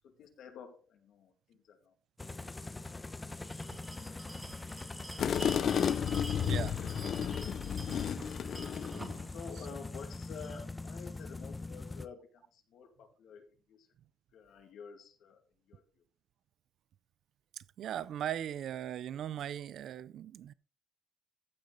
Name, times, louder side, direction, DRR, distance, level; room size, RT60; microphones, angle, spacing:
voice 1, 0.0-2.5 9.1-13.9 14.3-16.0, left 6 dB, 80° left, 2.3 m, -51 dB
sound 1, 2.2-12.1, left 3 dB, 15° left, 0.9 m, -43 dB
Bell, 3.4-10.7, right 2 dB, 20° right, 1.9 m, -49 dB
sound 2, 5.2-9.2, left 8 dB, 60° left, 0.5 m, -32 dB
voice 2, 6.4-6.8 17.5-20.5, right 10 dB, 70° right, 0.5 m, -39 dB
15.0 x 6.6 x 3.9 m
cardioid pair, 90°, 0 cm